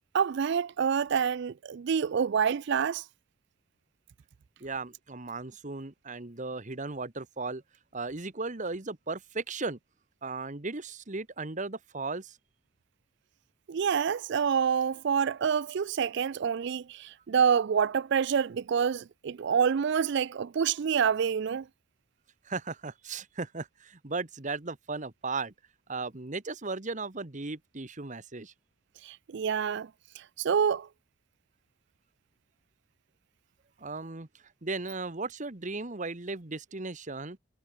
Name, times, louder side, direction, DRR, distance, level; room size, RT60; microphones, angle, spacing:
voice 1, 0.1-3.0 13.7-21.7 29.0-29.9 30.2-30.9, right 7 dB, 55° right, 0.4 m, -27 dB
voice 2, 4.6-7.6 7.9-9.8 10.2-12.4 22.4-25.5 25.9-28.5 33.8-34.3 34.6-37.4, right 3 dB, 35° right, 1.3 m, -36 dB
head